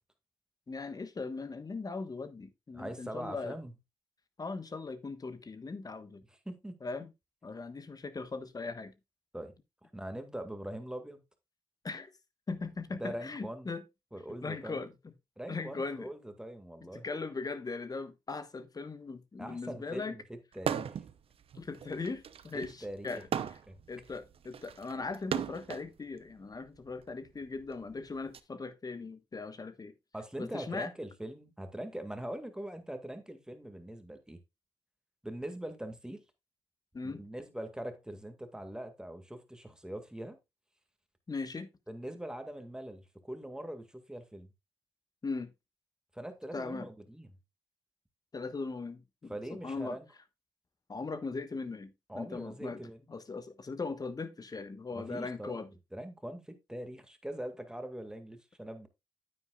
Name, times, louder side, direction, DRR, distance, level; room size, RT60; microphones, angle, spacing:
voice 1, 0.7-3.6 4.4-6.2 6.8-7.1 7.4-8.9 11.8-12.1 12.5-13.8 14.4-15.1 15.5-16.1 16.9-20.1 21.5-23.6 23.9-29.9 30.4-30.9 36.9-37.2 41.3-41.7 45.2-45.5 46.5-46.9 48.3-50.0 50.9-52.8 53.1-55.7, left 4 dB, 35° left, 1.3 m, -39 dB
voice 2, 2.7-3.7 6.5-6.8 9.3-9.5 9.8-11.2 13.0-13.7 14.1-14.9 15.4-17.1 19.4-21.0 22.5-23.2 23.7-23.8 30.1-34.4 35.2-36.2 37.0-40.4 41.9-44.5 46.1-47.3 49.3-50.1 52.1-53.0 54.9-55.6 55.9-58.9, right 1 dB, 5° right, 2.0 m, -42 dB
sound 1, 20.6-21.1 21.5-25.9 26.8-28.4, right 8 dB, 65° right, 0.7 m, -37 dB
9.2 x 8.9 x 2.4 m
cardioid pair, 60°, 10 cm